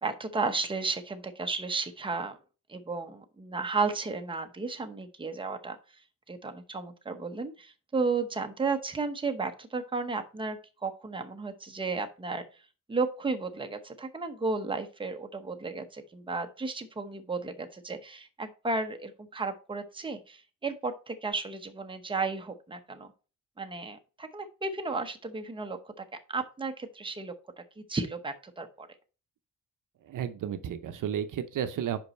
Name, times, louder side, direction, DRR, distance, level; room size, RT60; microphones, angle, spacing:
voice 1, 0.0-2.4 2.7-5.8 6.3-12.4 12.9-23.1 23.6-27.6 27.9-28.9, right 4 dB, 15° right, 6 dB, 0.8 m, -33 dB
voice 2, 30.0-32.0, right 9 dB, 75° right, 10 dB, 0.7 m, -32 dB
5.4 x 5.3 x 4.2 m, 0.35 s
cardioid pair, 105°, 32 cm